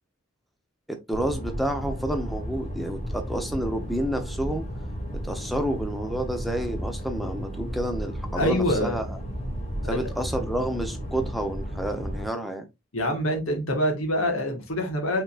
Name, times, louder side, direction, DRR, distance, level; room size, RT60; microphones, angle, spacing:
voice 1, 0.9-4.7 5.2-9.2 9.8-12.7, right 1 dB, ahead, 0.7 m, -29 dB
sound 1, 1.1-12.2, equal, 30° left, 2.2 m, -33 dB
voice 2, 8.3-9.0 9.8-10.1 12.9-15.2, left 1 dB, 85° left, 1.5 m, -25 dB
5.7 x 3.7 x 2.4 m
head